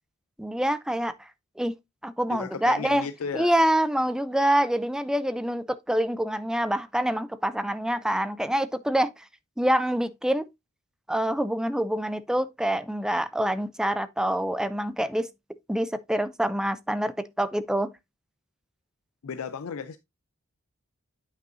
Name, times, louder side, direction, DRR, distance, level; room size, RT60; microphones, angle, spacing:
voice 1, 0.4-1.3 1.6-1.7 2.0-3.1 3.3-9.2 9.6-10.5 11.1-15.3 15.7-17.9, right 1 dB, 5° right, 0.4 m, -26 dB
voice 2, 2.3-3.5 19.2-20.0, left 6 dB, 75° left, 0.5 m, -34 dB
9.0 x 5.4 x 2.6 m
head